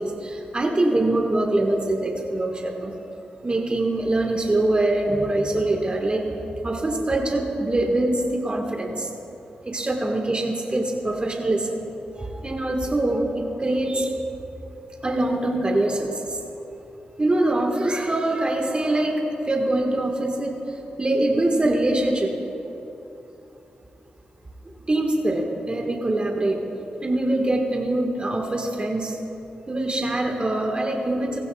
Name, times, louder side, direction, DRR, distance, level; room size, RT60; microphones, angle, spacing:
voice 1, 0.0-2.9 3.4-6.2 6.6-9.1 9.6-11.7 12.2-14.1 15.0-16.4 17.2-20.5 21.0-22.3 24.9-26.6 27.0-29.1 29.7-31.4, right 1 dB, 30° right, 1 dB, 1.5 m, -23 dB
16.5 x 15.5 x 2.3 m, 2.9 s
supercardioid pair, 45°, 3 cm